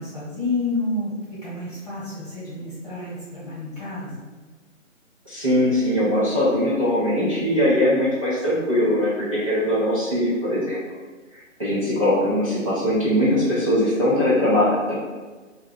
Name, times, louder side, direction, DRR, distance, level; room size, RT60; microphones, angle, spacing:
voice 1, 0.0-4.3, left 2 dB, 30° left, -10 dB, 1.3 m, -29 dB
voice 2, 5.3-10.8 11.3-14.9, left 1 dB, 25° right, -12 dB, 0.7 m, -21 dB
3.2 x 2.3 x 3.6 m, 1.3 s
hypercardioid pair, 175°, 39 cm